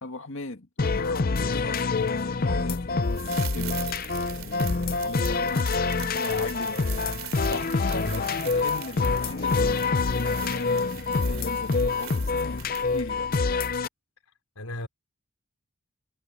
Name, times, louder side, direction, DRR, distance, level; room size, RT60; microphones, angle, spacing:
voice 1, 0.0-4.0 4.4-13.3, left 2 dB, 60° left, 2.2 m, -38 dB
sound 1, 0.8-13.9, left 4 dB, 40° left, 0.6 m, -26 dB
sound 2, 3.1-13.1 13.4-13.5, right 13 dB, 70° right, 3.0 m, -41 dB
voice 2, 8.0-8.3 14.6-14.9, left 1 dB, 85° left, 4.3 m, -35 dB
head